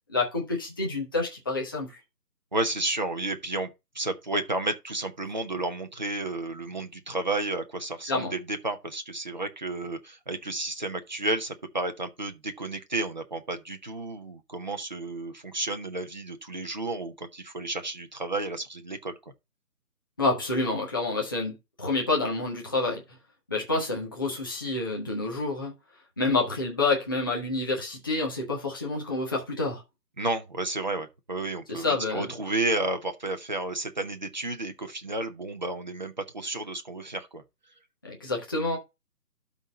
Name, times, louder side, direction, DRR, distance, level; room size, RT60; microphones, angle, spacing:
voice 1, 0.1-1.9 8.1-8.3 20.2-23.0 23.5-25.7 26.2-29.8 31.7-32.3 38.0-38.8, left 3 dB, 15° left, 1.0 m, -28 dB
voice 2, 2.5-3.7 3.9-19.2 30.2-37.4, right 2 dB, 30° right, 0.8 m, -32 dB
12.0 x 4.0 x 4.0 m
figure-of-eight pair, 155°, 48 cm